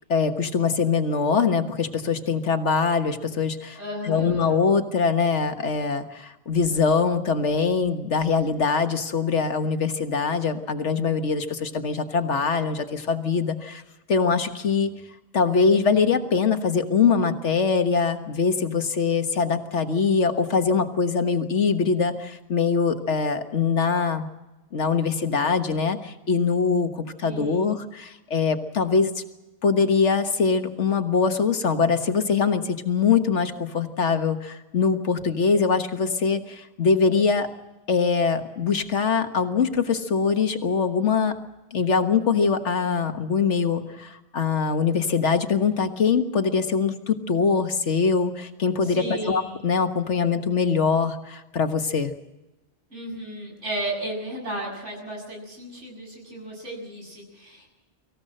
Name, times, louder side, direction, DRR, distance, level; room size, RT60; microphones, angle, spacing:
voice 1, 0.1-3.8 4.0-13.8 14.1-14.9 15.3-24.3 24.7-29.1 29.6-37.5 37.9-41.3 41.7-52.1, left 5 dB, 80° left, 7 dB, 1.7 m, -23 dB
voice 2, 3.8-4.5 27.2-27.7 48.8-49.6 52.9-57.8, right 1 dB, 90° right, 1 dB, 8.4 m, -34 dB
25.0 x 15.5 x 7.8 m, 1.0 s
omnidirectional pair, 1.2 m